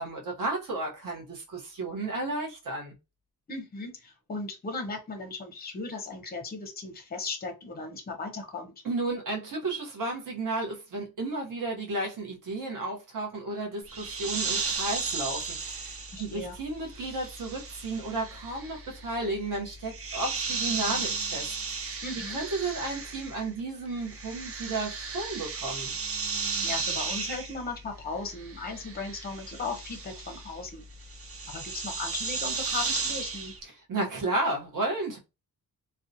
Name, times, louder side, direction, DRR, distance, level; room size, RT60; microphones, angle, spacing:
voice 1, 0.0-2.9 8.8-22.0 22.3-25.9 33.7-35.2, right 2 dB, 60° right, 0.8 m, -33 dB
voice 2, 3.5-8.7 16.1-16.6 22.0-22.4 26.6-30.8 31.5-33.5, left 3 dB, 25° left, 0.6 m, -37 dB
sound 1, 13.9-23.6 23.9-33.6, right 4 dB, 40° right, 0.4 m, -35 dB
2.6 x 2.1 x 2.5 m
wide cardioid pair, 170°, 37 cm